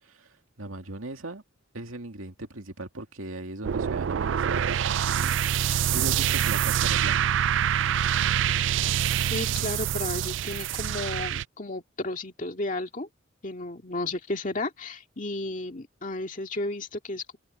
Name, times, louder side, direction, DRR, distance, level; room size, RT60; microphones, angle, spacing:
voice 1, 0.0-1.4 1.7-7.4, right 2 dB, 80° right, 2.5 m, -39 dB
sound 1, 3.6-11.4, right 9 dB, 60° right, 0.4 m, -25 dB
voice 2, 9.3-13.1 13.4-17.4, left 2 dB, 40° left, 2.3 m, -33 dB
head